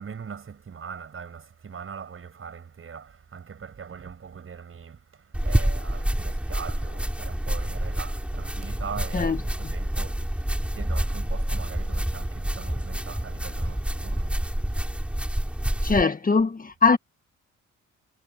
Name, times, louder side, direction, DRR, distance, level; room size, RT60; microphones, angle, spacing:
voice 1, 0.0-16.1, right 6 dB, 45° right, 7.0 m, -41 dB
sound 1, 5.3-16.0, right 1 dB, 5° right, 3.8 m, -28 dB
voice 2, 15.8-17.0, left 4 dB, 30° left, 1.8 m, -21 dB
cardioid pair, 90°, 30 cm